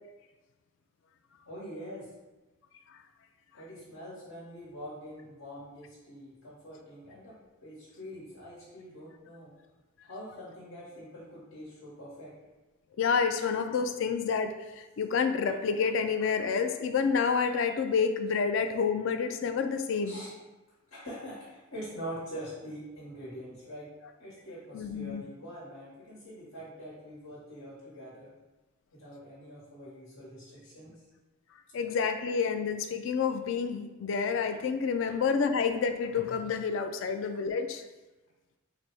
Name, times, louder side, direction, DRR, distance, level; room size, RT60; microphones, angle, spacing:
voice 1, 1.5-2.1 3.5-9.5 10.0-12.3 20.0-20.3 20.9-23.9 24.2-28.3 28.9-31.0, equal, 75° left, -8 dB, 1.1 m, -44 dB
voice 2, 13.0-20.2 24.7-25.2 31.7-37.8, left 5 dB, 60° left, 8 dB, 0.3 m, -29 dB
4.0 x 2.0 x 4.5 m, 1.1 s
head